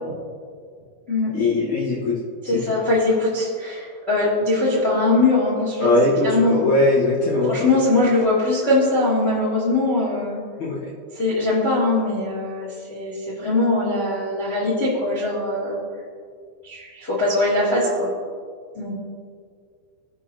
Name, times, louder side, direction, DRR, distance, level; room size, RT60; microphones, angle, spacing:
voice 1, 1.3-2.2 2.7-2.8 5.8-7.6 10.6-10.8, left 2 dB, 85° left, -8 dB, 1.6 m, -20 dB
voice 2, 2.5-5.9 6.2-6.6 7.5-10.4 11.1-15.8 16.6-18.1 18.7-18.9, left 2 dB, 65° left, -7 dB, 0.6 m, -21 dB
19.0 x 6.3 x 2.8 m, 2.1 s
omnidirectional pair, 5.9 m